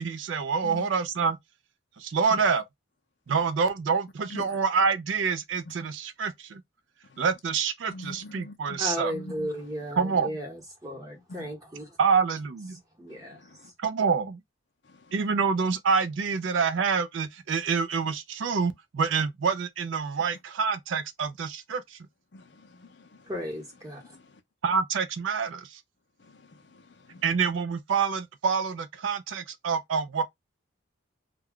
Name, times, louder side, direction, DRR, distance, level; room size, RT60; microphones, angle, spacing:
voice 1, 0.0-1.4 2.0-2.6 3.3-6.6 7.2-9.1 10.0-10.3 12.0-12.8 13.8-14.4 15.1-22.0 24.6-25.8 27.2-30.2, right 5 dB, 70° right, 0.4 m, -27 dB
voice 2, 4.3-4.6 7.0-7.2 7.9-8.8 9.1-9.6 11.3-11.5 13.1-13.7 14.8-15.3 22.3-23.3 24.0-24.4 26.2-27.2, left 2 dB, 60° left, 0.5 m, -45 dB
voice 3, 8.8-11.9 12.7-13.7 23.3-24.2, equal, 15° right, 1.0 m, -35 dB
2.3 x 2.2 x 3.5 m
head